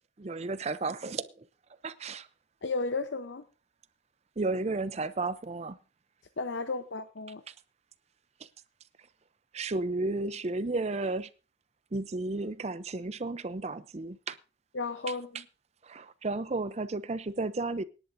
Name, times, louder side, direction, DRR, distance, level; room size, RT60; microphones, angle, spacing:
voice 1, 0.2-1.3 1.8-2.3 4.4-5.8 7.5-7.6 9.5-11.3 11.9-14.4 15.8-17.8, right 3 dB, 35° right, 0.5 m, -33 dB
voice 2, 2.6-3.4 6.4-7.4 14.7-15.4, left 3 dB, 70° left, 0.7 m, -33 dB
24.0 x 10.5 x 2.6 m
head